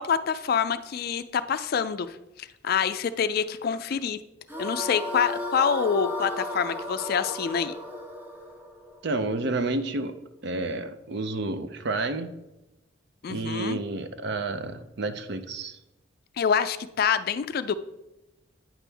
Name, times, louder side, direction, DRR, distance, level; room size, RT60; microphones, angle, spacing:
voice 1, 0.0-4.2 4.6-7.8 13.2-13.8 16.4-17.8, left 7 dB, 50° left, 12 dB, 0.3 m, -26 dB
sound 1, 4.5-9.7, left 1 dB, 10° right, 0.7 m, -35 dB
voice 2, 9.0-10.2 10.4-12.4 13.3-15.8, right 2 dB, 55° right, 10 dB, 0.5 m, -30 dB
8.9 x 6.0 x 3.4 m, 0.96 s
head